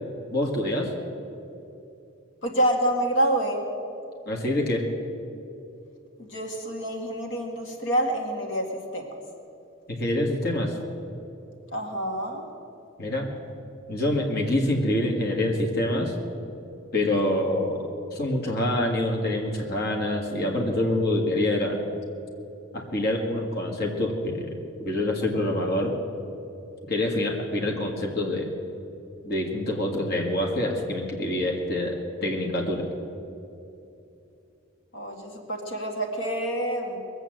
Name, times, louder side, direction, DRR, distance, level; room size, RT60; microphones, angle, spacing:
voice 1, 0.3-0.9 4.2-4.9 9.9-10.8 13.0-13.3 13.9-16.1 16.9-21.8 22.7-25.9 26.9-28.5 29.2-32.9, left 1 dB, 50° left, 0 dB, 1.9 m, -26 dB
voice 2, 2.4-3.6 6.2-8.7 8.9-9.1 11.7-12.4 34.9-37.0, right 1 dB, 75° left, 2 dB, 1.8 m, -27 dB
21.0 x 8.0 x 7.8 m, 2.8 s
head